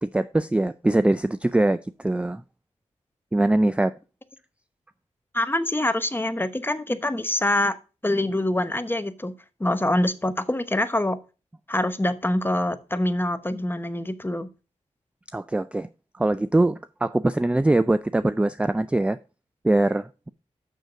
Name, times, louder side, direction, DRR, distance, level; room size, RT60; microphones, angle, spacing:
voice 1, 0.0-2.4 3.3-4.0 15.3-15.9 16.1-19.2 19.6-20.3, right 2 dB, 10° right, 0.3 m, -22 dB
voice 2, 5.3-7.8 8.0-9.3 9.6-11.2 11.7-14.5, left 1 dB, 15° left, 0.9 m, -25 dB
6.7 x 6.4 x 4.7 m
cardioid pair, 55°, 13 cm